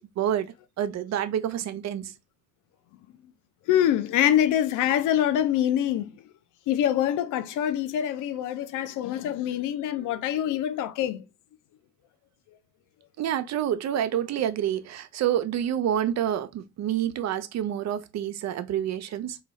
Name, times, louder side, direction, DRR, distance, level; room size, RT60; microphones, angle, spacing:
voice 1, 0.2-0.5 0.8-2.1 10.0-10.1 13.2-19.4, right 10 dB, 60° right, 0.6 m, -28 dB
voice 2, 3.7-6.1 6.7-11.2, left 11 dB, 90° left, 0.5 m, -25 dB
3.9 x 2.3 x 3.1 m
cardioid pair, 90°, 30 cm